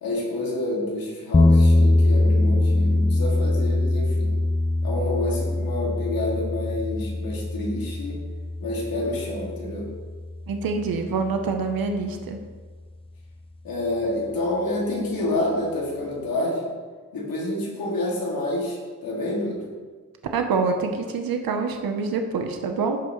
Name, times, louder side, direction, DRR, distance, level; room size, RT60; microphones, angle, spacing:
voice 1, 0.0-4.3 4.8-8.2 8.6-9.9 13.6-16.7 17.1-19.7, left 2 dB, 90° left, -4 dB, 2.4 m, -28 dB
sound 1, 1.3-11.4, left 2 dB, 15° left, 0.7 m, -22 dB
voice 2, 10.5-12.4 20.3-23.0, right 4 dB, 80° right, 5 dB, 0.9 m, -26 dB
15.0 x 5.7 x 3.2 m, 1.5 s
cardioid pair, 55°, 35 cm